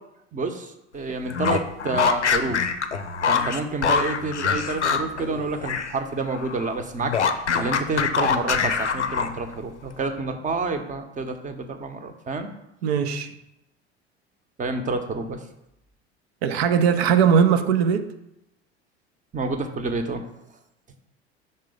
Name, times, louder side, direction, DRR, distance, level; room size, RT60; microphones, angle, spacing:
voice 1, 0.3-2.6 3.3-7.1 7.5-12.5 14.6-15.4 19.3-20.3, right 3 dB, 25° right, 0.8 m, -28 dB
sound 1, 1.3-6.0 6.3-9.5, left 6 dB, 90° left, 0.5 m, -24 dB
voice 2, 12.8-13.3 16.4-18.1, right 7 dB, 65° right, 0.7 m, -19 dB
5.6 x 3.6 x 5.0 m
figure-of-eight pair, 70°, 33 cm